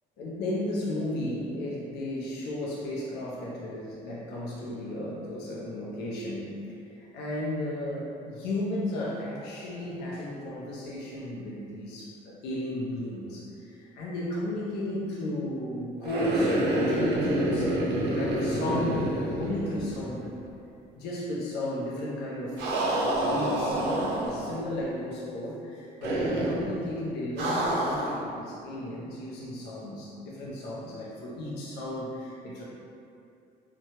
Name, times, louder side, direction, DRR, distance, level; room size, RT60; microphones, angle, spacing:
voice 1, 0.2-19.1 19.4-20.3 21.0-32.6, left 1 dB, 80° left, -5 dB, 0.5 m, -34 dB
sound 1, 16.0-20.2 20.5-20.6 22.6-24.6 26.0-26.7 27.4-28.2, right 1 dB, 80° right, 0.6 m, -27 dB
2.8 x 2.2 x 2.8 m, 2.6 s
cardioid pair, 110°, 17 cm